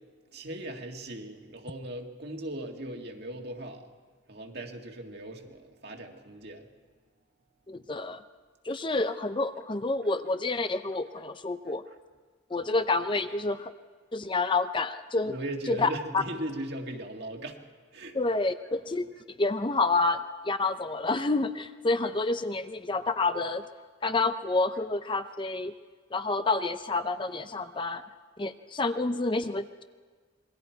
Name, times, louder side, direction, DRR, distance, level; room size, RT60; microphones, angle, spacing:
voice 1, 0.3-3.9 4.3-6.7 11.7-11.8 15.2-17.6 17.9-18.2, right 1 dB, 55° right, 2 dB, 2.0 m, -38 dB
voice 2, 7.7-8.2 8.6-11.8 12.5-13.7 14.1-15.3 15.7-15.9 16.1-16.2 18.1-23.6 24.0-25.7 26.1-28.0 28.4-29.8, left 3 dB, 25° left, 10 dB, 0.5 m, -28 dB
27.0 x 22.0 x 4.6 m, 1.5 s
head